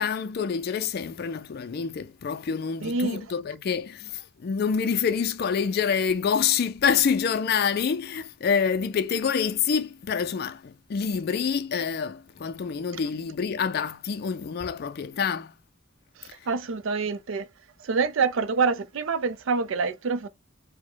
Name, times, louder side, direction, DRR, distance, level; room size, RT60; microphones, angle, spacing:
voice 1, 0.0-15.5, left 6 dB, 55° left, 0.4 m, -27 dB
voice 2, 2.8-3.2 16.2-17.5 17.8-20.3, right 4 dB, 80° right, 0.5 m, -26 dB
4.5 x 2.1 x 4.4 m
head